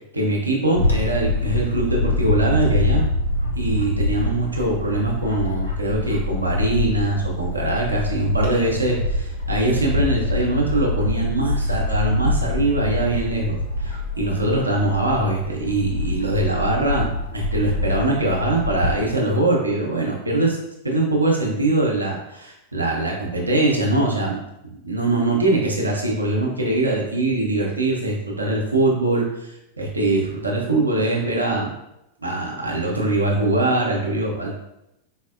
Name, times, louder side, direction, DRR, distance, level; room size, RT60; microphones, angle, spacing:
voice 1, 0.1-3.0 3.6-20.6 20.8-24.4 24.6-31.7 32.2-34.5, right 2 dB, 80° right, -2 dB, 0.6 m, -22 dB
Bird / Wind, 0.7-19.0, left 2 dB, 85° left, 0.7 m, -25 dB
4.2 x 2.0 x 2.4 m, 0.86 s
figure-of-eight pair, 90°, 0 cm